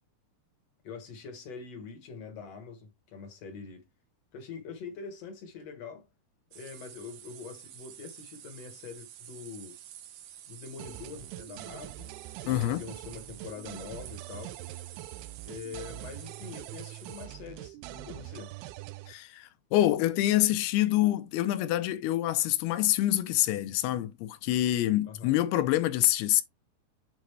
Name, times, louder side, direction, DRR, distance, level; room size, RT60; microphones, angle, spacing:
voice 1, 0.8-3.9 4.3-6.1 6.5-9.8 10.5-12.1 12.4-14.6 15.5-18.5 25.0-25.4, left 5 dB, 60° left, 1.8 m, -44 dB
sound 1, 6.5-17.3, right 11 dB, 70° right, 2.5 m, -49 dB
sound 2, 10.8-19.1, right 16 dB, 90° right, 2.6 m, -43 dB
voice 2, 12.5-12.8 19.1-26.4, left 14 dB, 85° left, 2.7 m, -26 dB
8.3 x 3.9 x 3.2 m
omnidirectional pair, 4.5 m